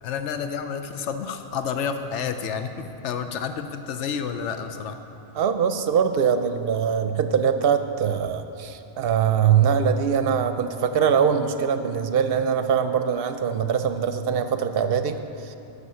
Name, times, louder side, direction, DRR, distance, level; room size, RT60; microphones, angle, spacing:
voice 1, 0.0-5.0, left 6 dB, 85° left, 8 dB, 1.0 m, -30 dB
voice 2, 5.3-15.5, right 7 dB, 65° right, 9 dB, 0.7 m, -22 dB
11.0 x 7.0 x 5.6 m, 2.8 s
omnidirectional pair, 1.2 m